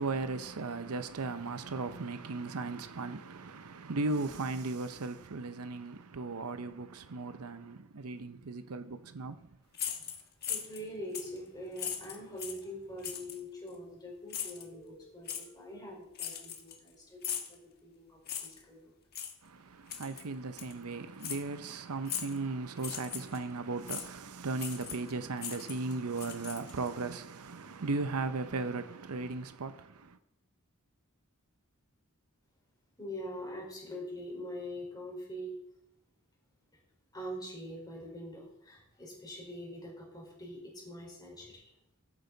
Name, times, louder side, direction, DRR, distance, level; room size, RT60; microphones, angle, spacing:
voice 1, 0.0-9.5 19.4-30.2, right 3 dB, 80° right, 0.7 m, -37 dB
sound 1, 9.7-10.8 11.1-11.4 11.8-12.6 13.0-13.4 14.3-14.6 15.3-15.4 16.2-16.9 17.2-17.5 18.3-18.6 19.1-19.3 19.9-20.2 20.6-20.7 21.2-21.4 22.1-22.4 22.8-23.4 23.9-24.1 24.6-25.1 25.4-26.9, left 9 dB, 45° left, 1.4 m, -38 dB
voice 2, 10.5-17.2 17.5-18.9 33.0-35.6 37.1-41.6, equal, 20° left, 4.3 m, -44 dB
13.5 x 8.7 x 3.9 m
head